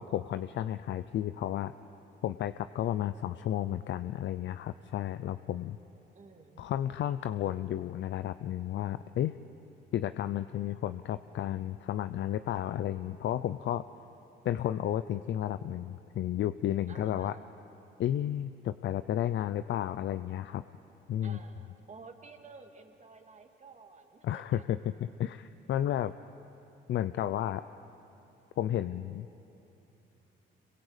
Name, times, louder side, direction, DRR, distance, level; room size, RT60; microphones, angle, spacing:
voice 1, 0.0-1.7 2.2-5.8 6.6-9.4 9.9-13.8 14.4-17.3 18.0-20.6 21.1-21.4 24.2-24.8 25.2-26.1 26.9-27.6 28.6-29.3, left 11 dB, 65° left, 12 dB, 0.6 m, -32 dB
voice 2, 6.1-6.7 16.9-17.4 21.2-24.6, right 4 dB, 35° right, 4 dB, 2.3 m, -52 dB
26.5 x 22.5 x 8.3 m, 3.0 s
cardioid pair, 90°, 20 cm